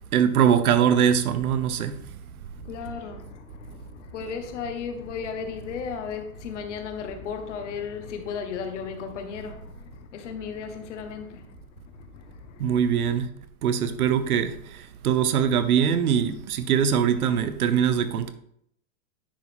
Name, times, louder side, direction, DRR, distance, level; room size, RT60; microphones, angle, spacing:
voice 1, 0.1-1.9 12.6-13.3 13.6-18.3, right 8 dB, 85° right, 0.9 m, -22 dB
voice 2, 2.5-11.5 11.9-13.1, left 6 dB, 55° left, 1.4 m, -35 dB
10.0 x 4.8 x 3.6 m
supercardioid pair, 170°, 43 cm